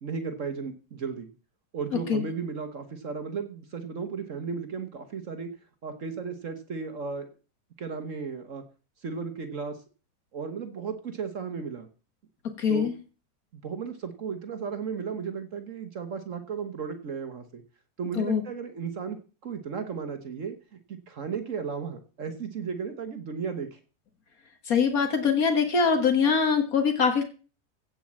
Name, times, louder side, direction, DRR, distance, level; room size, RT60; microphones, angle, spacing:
voice 1, 0.0-1.3 1.7-5.6 5.8-7.3 7.8-8.6 9.0-9.8 10.3-11.9 12.7-12.9 13.5-17.6 18.0-23.8, right 5 dB, 60° right, 8 dB, 1.5 m, -35 dB
voice 2, 12.6-12.9 18.2-18.4 24.7-27.2, left 6 dB, 75° left, 6 dB, 2.0 m, -23 dB
16.0 x 5.4 x 7.3 m, 0.37 s
omnidirectional pair, 1.5 m